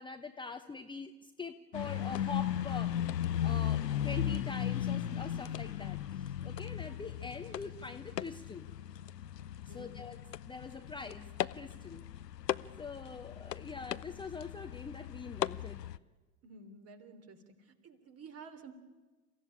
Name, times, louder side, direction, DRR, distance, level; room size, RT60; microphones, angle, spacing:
voice 1, 0.0-2.9 3.4-8.7 9.7-10.2 10.4-12.0 12.8-15.8, left 4 dB, 10° left, 6 dB, 1.0 m, -44 dB
sound 1, 1.7-16.0, left 10 dB, 80° left, 0.8 m, -37 dB
voice 2, 7.4-7.8 9.7-10.0 16.4-18.7, right 4 dB, 30° right, 9 dB, 3.3 m, -52 dB
29.5 x 15.5 x 9.7 m, 1.2 s
figure-of-eight pair, 85°, 48 cm